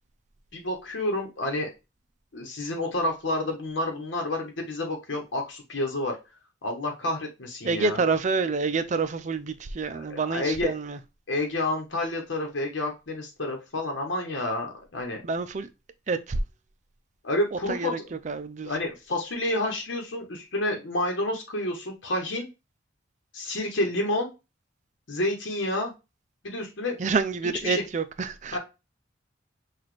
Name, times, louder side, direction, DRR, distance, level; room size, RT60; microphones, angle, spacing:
voice 1, 0.5-1.7 2.3-6.2 6.6-8.0 9.9-10.7 11.3-15.2 17.2-17.9 18.6-22.5 23.3-24.3 25.1-25.9 26.4-26.9 27.6-27.8 28.5-28.6, left 1 dB, 80° left, 1.0 m, -29 dB
voice 2, 7.6-11.0 15.2-15.7 16.1-16.4 17.5-18.0 18.2-18.7 27.0-28.6, right 4 dB, 40° right, 0.4 m, -28 dB
6.0 x 2.4 x 3.1 m
head